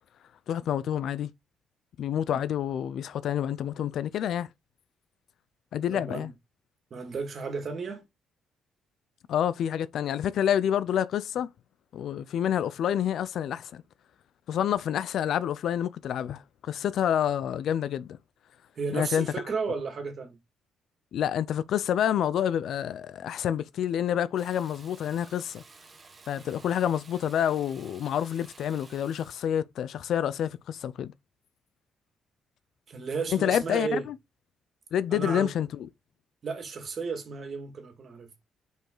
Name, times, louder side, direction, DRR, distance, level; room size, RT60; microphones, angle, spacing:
voice 1, 0.5-1.3 2.0-4.5 5.7-6.3 9.3-11.5 11.9-13.8 14.5-18.2 18.9-19.3 21.1-25.6 26.3-31.1 33.3-34.2 34.9-35.9, left 9 dB, 70° left, 0.4 m, -28 dB
voice 2, 5.9-6.3 6.9-8.0 18.8-20.4 26.3-26.7 32.9-34.0 35.1-35.5 36.4-38.3, right 4 dB, 50° right, 2.0 m, -33 dB
Water tap faucet / Bathtub (filling or washing), 24.4-29.5, right 4 dB, 35° right, 1.2 m, -53 dB
5.3 x 4.7 x 3.8 m
cardioid pair, 90°, 0 cm